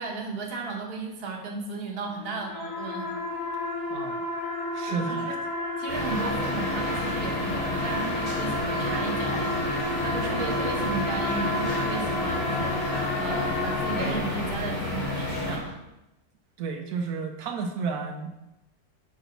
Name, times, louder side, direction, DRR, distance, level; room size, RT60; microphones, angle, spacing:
voice 1, 0.0-3.4 4.9-5.4 5.8-15.8, right 4 dB, 45° right, 0 dB, 1.2 m, -35 dB
sound 1, 2.1-14.9, left 1 dB, 65° left, 1.4 m, -31 dB
voice 2, 3.9-4.2 4.7-5.4 16.6-18.4, right 5 dB, 80° right, 3 dB, 1.1 m, -32 dB
sound 2, 5.9-15.6, left 2 dB, 80° left, 2.7 m, -30 dB
4.9 x 4.0 x 5.7 m, 0.94 s
omnidirectional pair, 1.5 m